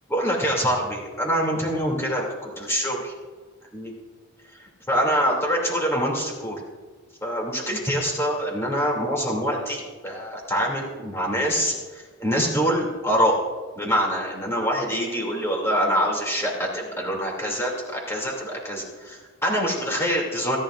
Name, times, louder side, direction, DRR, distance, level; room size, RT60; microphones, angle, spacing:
voice 1, 0.1-3.1 3.7-3.9 4.5-6.6 7.2-13.4 13.8-20.6, equal, 10° left, -2 dB, 2.7 m, -25 dB
29.0 x 10.5 x 2.5 m, 1.4 s
head